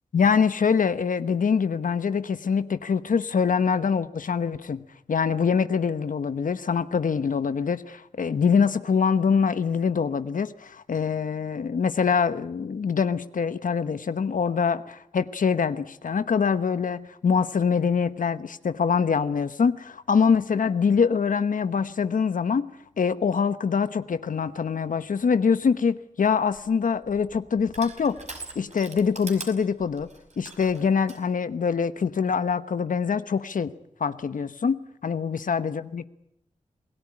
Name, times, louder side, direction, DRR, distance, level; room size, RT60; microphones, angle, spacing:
voice 1, 0.1-4.8 5.1-22.7 23.0-28.2 28.5-30.1 30.4-33.7 34.0-34.8 35.0-36.1, left 6 dB, 75° left, 12 dB, 1.1 m, -24 dB
Crushing, 26.3-31.2, right 3 dB, 55° right, 5.7 m, -43 dB
27.5 x 18.0 x 9.9 m, 0.80 s
cardioid pair, 60°, 14 cm